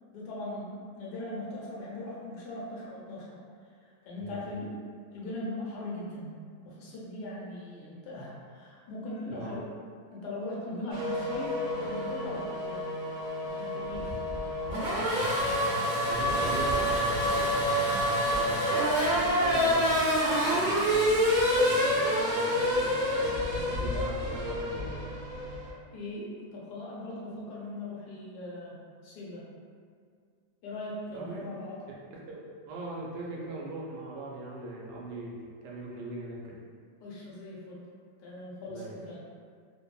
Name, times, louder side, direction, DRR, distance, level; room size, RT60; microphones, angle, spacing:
voice 1, 0.1-3.4 3.8-4.7 5.1-6.3 6.6-9.7 10.1-12.8 13.4-14.1 25.4-25.5 25.9-28.7 29.0-29.4 30.6-31.8 37.0-37.9 38.2-39.2, left 1 dB, 85° left, -5 dB, 1.3 m, -39 dB
voice 2, 4.2-4.6 9.2-9.6 14.4-14.5 15.1-15.3 16.0-25.2 31.1-31.4 32.1-35.3 35.6-36.6 38.7-39.0, right 2 dB, 85° right, -4 dB, 1.2 m, -41 dB
Race car auto racing / Accelerating revving vroom, 10.9-25.7, equal, 60° right, 0.7 m, -27 dB
3.0 x 2.0 x 2.2 m, 2.1 s
omnidirectional pair, 1.7 m